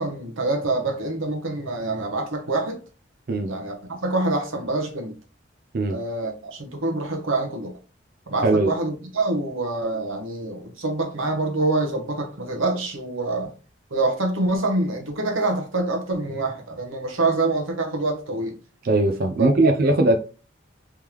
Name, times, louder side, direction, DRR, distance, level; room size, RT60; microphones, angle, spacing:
voice 1, 0.0-2.8 3.5-5.1 5.9-7.7 8.3-13.5 13.9-18.5 19.4-19.9, right 2 dB, 85° right, 1.0 m, -26 dB
voice 2, 8.4-8.7 18.8-20.2, right 2 dB, 50° right, 0.4 m, -19 dB
3.6 x 3.2 x 2.9 m
head